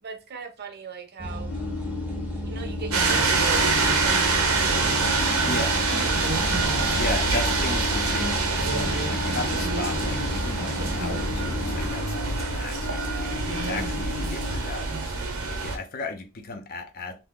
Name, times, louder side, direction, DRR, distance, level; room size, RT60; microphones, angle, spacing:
voice 1, 0.0-1.5 2.5-4.4 5.2-5.4 5.7-6.6, right 5 dB, 50° right, 0.6 m, -40 dB
sound 1, 1.2-11.9, equal, 10° right, 0.6 m, -33 dB
sound 2, 1.5-15.6, left 5 dB, 90° left, 0.7 m, -37 dB
sound 3, 2.9-15.8, right 3 dB, 85° right, 0.8 m, -25 dB
voice 2, 5.4-5.8 6.9-17.2, left 3 dB, 45° left, 0.6 m, -35 dB
2.8 x 2.1 x 3.6 m
head